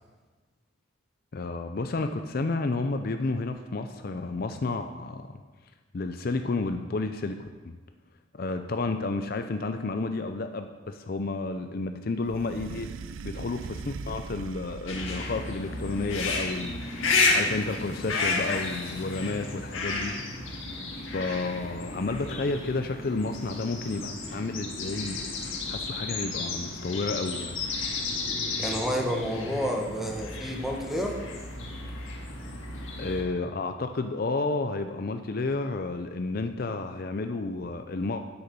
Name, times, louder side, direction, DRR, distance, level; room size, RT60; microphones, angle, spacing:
voice 1, 1.3-5.4 5.9-7.4 7.6-7.7 8.3-12.9 13.2-20.1 21.1-25.3 25.7-27.6 33.0-38.3, left 3 dB, 50° left, 7 dB, 0.5 m, -31 dB
sound 1, 12.3-15.3 15.8-16.8, right 4 dB, 85° right, 0.4 m, -41 dB
sound 2, 14.9-33.2, left 3 dB, 90° left, 1.8 m, -32 dB
voice 2, 28.6-31.2, equal, ahead, 0 dB, 1.2 m, -30 dB
9.6 x 8.3 x 5.3 m, 1.3 s
head